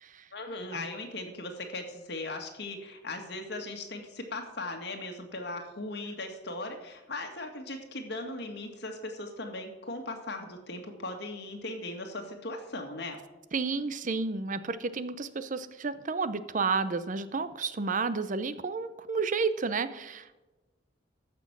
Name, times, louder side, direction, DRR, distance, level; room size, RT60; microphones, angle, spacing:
voice 1, 0.3-13.2, left 2 dB, 60° left, 4 dB, 2.0 m, -38 dB
voice 2, 13.5-20.3, right 4 dB, 45° right, 13 dB, 0.6 m, -31 dB
14.0 x 6.1 x 6.0 m, 1.1 s
head